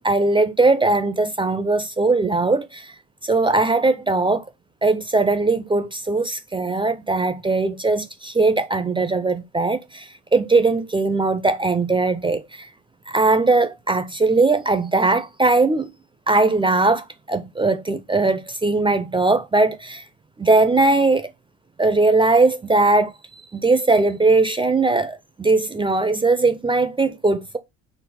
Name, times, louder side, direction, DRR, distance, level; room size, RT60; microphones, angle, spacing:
voice 1, 0.0-2.9 3.2-4.4 4.8-12.7 13.1-15.9 16.3-20.0 20.4-21.3 21.8-23.1 23.5-27.6, right 3 dB, 15° right, 0.3 m, -19 dB
5.8 x 2.0 x 4.1 m
supercardioid pair, 85°, 40 cm